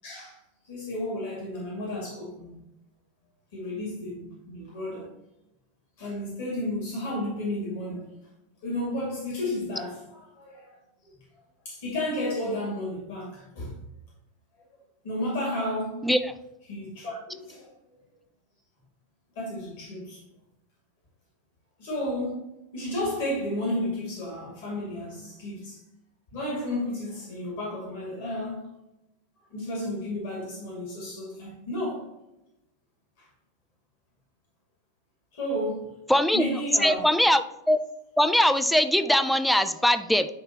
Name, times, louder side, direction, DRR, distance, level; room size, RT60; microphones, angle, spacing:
voice 1, 0.0-0.4 0.6-2.7 3.5-5.1 6.0-8.2 8.6-10.8 11.0-11.3 11.6-13.8 15.0-16.1 16.7-17.7 19.4-20.2 21.8-22.4 22.7-25.8 26.3-28.7 29.5-32.1 33.2-33.3 35.3-36.0 36.3-37.0 39.4-39.6, left 1 dB, 50° left, 2.2 m, -32 dB
voice 2, 36.1-36.4 36.8-37.8 38.2-40.3, left 1 dB, ahead, 0.4 m, -21 dB
9.8 x 3.3 x 2.9 m
figure-of-eight pair, 90°, 0 cm